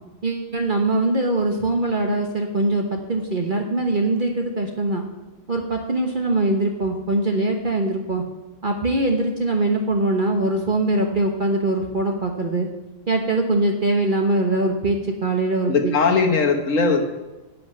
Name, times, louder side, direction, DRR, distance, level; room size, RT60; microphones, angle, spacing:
voice 1, 0.2-5.0 5.5-8.2 8.6-12.7 13.1-16.2, right 2 dB, 40° right, 2 dB, 1.3 m, -22 dB
voice 2, 15.7-17.0, left 4 dB, 85° left, 3 dB, 1.7 m, -19 dB
10.5 x 6.2 x 8.9 m, 1.1 s
omnidirectional pair, 1.3 m